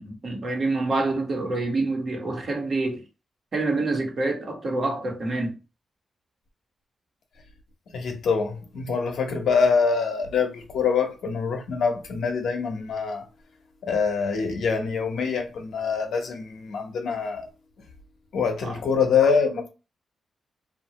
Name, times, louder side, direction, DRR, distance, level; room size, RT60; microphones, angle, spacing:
voice 1, 0.0-3.1 3.5-5.6 18.6-18.7, right 2 dB, 55° right, 1.1 m, -27 dB
voice 2, 7.9-13.2 13.8-17.4 18.3-19.7, left 5 dB, 80° left, 0.8 m, -25 dB
2.8 x 2.5 x 2.9 m
cardioid pair, 70°, 0 cm